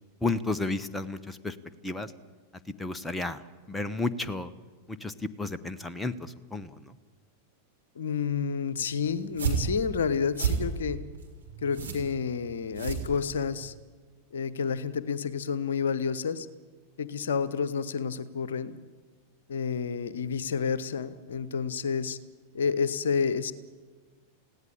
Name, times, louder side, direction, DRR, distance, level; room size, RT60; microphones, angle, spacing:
voice 1, 0.2-1.6 1.8-2.1 2.8-4.5 4.9-6.9, left 3 dB, 10° left, 11 dB, 0.9 m, -32 dB
voice 2, 7.9-11.0 11.6-13.7 14.3-16.5 17.0-18.8 19.5-22.2 22.5-23.5, left 6 dB, 65° left, 15 dB, 1.0 m, -29 dB
sound 1, 9.2-13.7, right 6 dB, 75° right, 4.3 m, -32 dB
19.0 x 16.5 x 10.0 m, 1.3 s
figure-of-eight pair, 90°, 0 cm